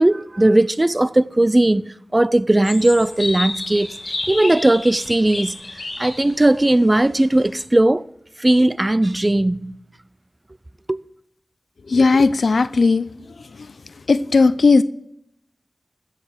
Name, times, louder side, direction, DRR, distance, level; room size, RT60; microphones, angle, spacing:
voice 1, 0.0-4.0 4.3-5.5 6.0-8.1 8.4-9.8 10.9-11.0, right 1 dB, 25° right, 0.5 m, -17 dB
sound 1, 2.6-7.6, left 2 dB, 55° left, 2.3 m, -31 dB
voice 2, 11.9-13.1 13.4-13.7 14.1-14.8, left 4 dB, 75° left, 0.5 m, -16 dB
15.5 x 6.6 x 7.5 m
wide cardioid pair, 60°, 0 cm